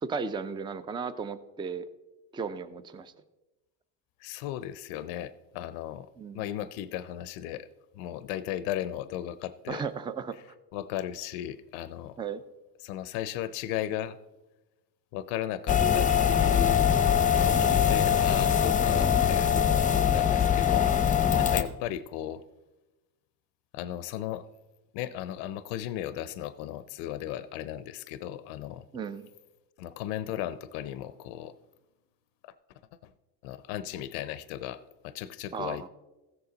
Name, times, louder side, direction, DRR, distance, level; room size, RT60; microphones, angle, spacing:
voice 1, 0.0-1.9 2.3-3.1 6.2-6.4 9.7-10.4 12.2-12.4 17.5-17.9 18.9-19.0 21.3-21.6 28.9-29.3 35.5-35.9, right 5 dB, 10° right, 13 dB, 0.4 m, -35 dB
voice 2, 4.2-6.1 6.3-7.7 7.9-9.8 10.7-12.2 12.8-14.2 15.1-16.9 17.3-19.5 19.8-20.9 21.3-22.4 23.7-24.5 24.9-28.9 29.8-31.5 33.4-35.9, left 12 dB, 85° left, 14 dB, 0.6 m, -36 dB
sound 1, 15.7-21.6, left 8 dB, 20° left, 0.7 m, -23 dB
15.5 x 6.9 x 3.9 m, 1.1 s
cardioid pair, 115°, 41 cm